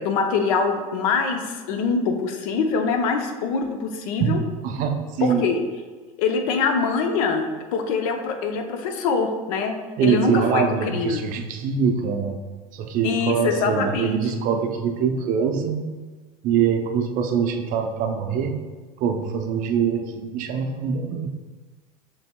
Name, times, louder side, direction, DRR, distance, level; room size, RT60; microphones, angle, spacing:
voice 1, 0.0-4.4 5.2-5.6 6.2-10.6 10.9-11.2 13.0-14.2, left 4 dB, 65° left, 5 dB, 0.6 m, -24 dB
voice 2, 4.6-5.5 10.0-12.4 12.7-15.9 16.4-18.6 19.0-21.3, right 7 dB, 45° right, 5 dB, 0.5 m, -23 dB
6.8 x 3.3 x 2.2 m, 1.4 s
hypercardioid pair, 80°, 19 cm